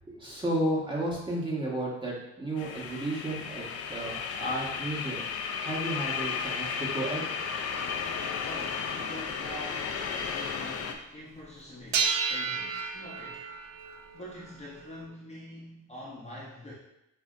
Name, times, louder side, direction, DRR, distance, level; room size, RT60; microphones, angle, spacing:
voice 1, 0.1-5.2 5.6-7.3, right 1 dB, 15° right, -5 dB, 1.1 m, -33 dB
sound 1, 2.6-10.9, left 6 dB, 50° left, 0.4 m, -34 dB
sound 2, 7.6-7.7 8.6-8.7 9.2-9.3 9.7-10.0 11.9-15.1, right 6 dB, 65° right, 0.5 m, -32 dB
voice 2, 8.4-13.4 14.1-16.7, left 1 dB, 20° left, -6 dB, 0.7 m, -45 dB
5.5 x 2.0 x 2.4 m, 0.83 s
cardioid pair, 90°, 30 cm